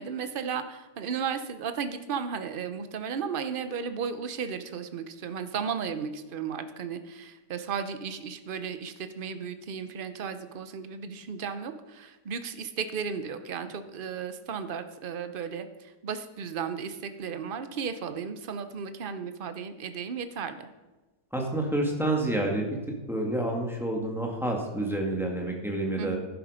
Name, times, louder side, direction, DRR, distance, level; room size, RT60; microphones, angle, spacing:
voice 1, 0.0-20.7 26.0-26.2, right 6 dB, 50° right, 10 dB, 0.7 m, -34 dB
voice 2, 21.3-22.7 23.1-26.2, right 1 dB, ahead, 0 dB, 2.0 m, -28 dB
11.5 x 11.0 x 5.1 m, 1.2 s
omnidirectional pair, 1.8 m